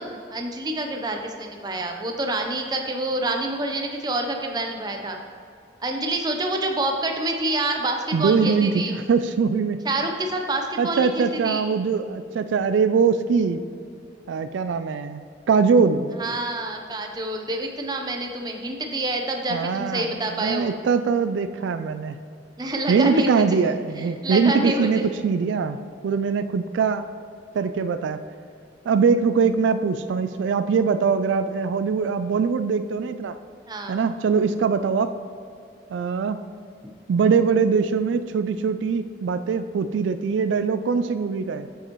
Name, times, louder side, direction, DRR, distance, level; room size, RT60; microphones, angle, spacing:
voice 1, 0.0-5.2 5.8-8.9 9.8-11.7 16.2-20.7 22.6-23.6 24.0-25.0 33.7-34.0, right 1 dB, 20° right, 3 dB, 0.6 m, -27 dB
voice 2, 8.1-9.8 10.8-13.6 14.3-16.2 19.5-22.2 22.9-25.8 26.0-27.1 27.5-28.2 28.9-33.3 33.9-35.1 35.9-36.4 37.1-41.7, right 5 dB, 85° right, 11 dB, 0.3 m, -22 dB
8.8 x 7.0 x 3.0 m, 2.4 s
head